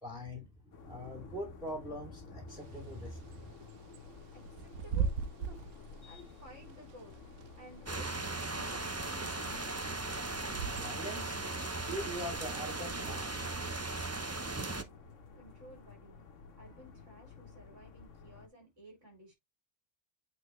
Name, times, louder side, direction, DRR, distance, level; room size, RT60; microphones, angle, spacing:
voice 1, 0.0-3.6 6.0-6.2 10.7-11.4 11.9-13.6, equal, 5° right, 2.5 m, -43 dB
sound 1, 0.7-18.5, left 4 dB, 60° left, 1.5 m, -53 dB
Bird / Wind, 2.5-11.2, right 6 dB, 90° right, 1.3 m, -40 dB
voice 2, 4.3-5.6 6.0-9.7 15.4-16.3 16.6-19.3, equal, 55° right, 4.2 m, -55 dB
sound 2, 7.9-14.8, right 2 dB, 20° right, 0.4 m, -38 dB
8.3 x 4.1 x 3.2 m
omnidirectional pair, 1.5 m